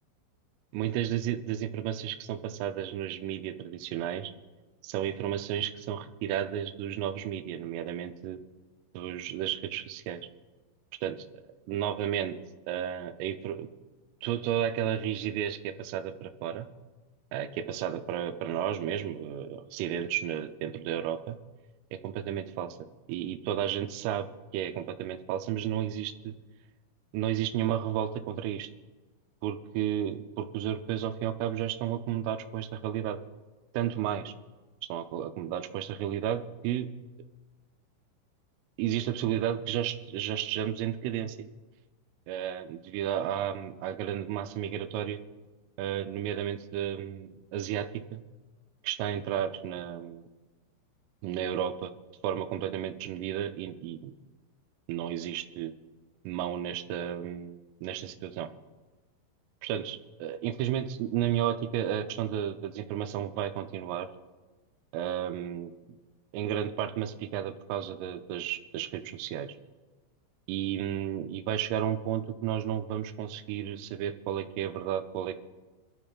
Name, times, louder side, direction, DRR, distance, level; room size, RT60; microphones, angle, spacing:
voice 1, 0.7-4.3 4.8-8.4 8.9-10.2 11.0-11.2 11.7-12.4 12.7-13.7 14.2-16.7 17.3-21.4 22.0-22.8 23.1-24.3 24.5-26.3 27.1-28.7 29.4-33.2 33.7-34.3 34.9-36.9 38.8-41.5 42.3-45.2 45.8-48.2 48.8-50.3 51.2-51.9 52.2-54.1 54.9-55.7 56.2-58.5 59.6-64.1 64.9-65.7 66.3-69.6 70.5-75.3, right 10 dB, 85° right, 8 dB, 3.2 m, -32 dB
27.0 x 12.5 x 2.4 m, 1.3 s
omnidirectional pair, 5.9 m